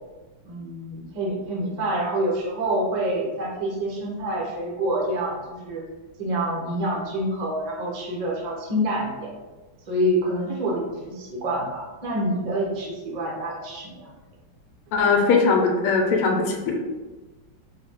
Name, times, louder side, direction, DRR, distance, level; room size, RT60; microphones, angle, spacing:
voice 1, 0.4-5.8 6.2-9.3 9.9-14.1, right 1 dB, 65° right, -4 dB, 0.4 m, -27 dB
voice 2, 14.9-16.8, left 4 dB, 85° left, 2 dB, 1.6 m, -20 dB
3.9 x 2.4 x 4.4 m, 1.2 s
omnidirectional pair, 2.4 m